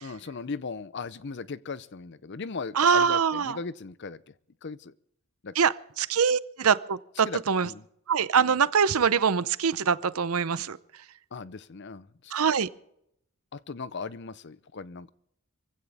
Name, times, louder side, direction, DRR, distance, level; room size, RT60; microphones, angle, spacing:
voice 1, 0.0-4.2 4.6-4.9 5.4-5.5 7.2-7.9 11.3-12.4 13.5-15.1, left 4 dB, 50° left, 0.6 m, -38 dB
voice 2, 2.8-3.6 5.6-7.7 8.1-10.8 12.3-12.7, right 6 dB, 80° right, 0.7 m, -24 dB
23.5 x 16.0 x 3.5 m
head